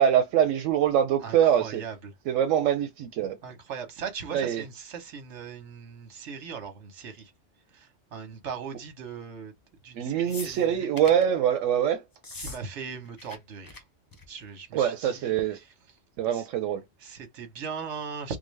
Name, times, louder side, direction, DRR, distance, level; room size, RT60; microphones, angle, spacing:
voice 1, 0.0-1.8 2.3-3.4 4.3-4.6 9.9-12.0 14.7-15.6 16.2-16.8, right 9 dB, 90° right, 0.9 m, -24 dB
voice 2, 1.2-2.1 3.4-7.3 7.7-9.5 9.8-10.9 12.3-13.8 14.3-15.7 16.3-16.5 17.0-18.4, right 6 dB, 70° right, 1.3 m, -39 dB
sound 1, 10.3-11.3 12.1-12.6 12.9-13.4 13.6-13.8 14.1-14.4 15.4-15.5, left 2 dB, 25° left, 0.5 m, -42 dB
3.8 x 2.0 x 3.1 m
omnidirectional pair, 1.3 m